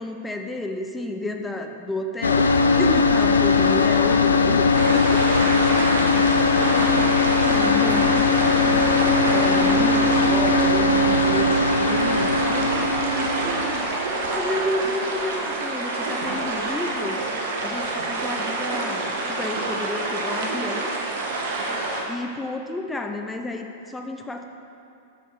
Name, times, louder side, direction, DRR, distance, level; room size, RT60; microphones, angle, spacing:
voice 1, 0.0-5.4 6.6-8.1 9.3-17.2 17.6-20.9 22.1-24.4, left 2 dB, 10° left, 4 dB, 0.7 m, -31 dB
sound 1, 2.2-14.1, left 3 dB, 85° left, 0.5 m, -19 dB
sound 2, 4.7-22.0, right 2 dB, 60° right, 1.4 m, -28 dB
voice 2, 5.7-6.4 6.9-7.0 7.4-9.1 9.4-9.6 10.2-10.5, right 3 dB, 80° right, 3 dB, 1.0 m, -35 dB
7.0 x 6.4 x 5.8 m, 2.7 s
hypercardioid pair, 100°, 0 cm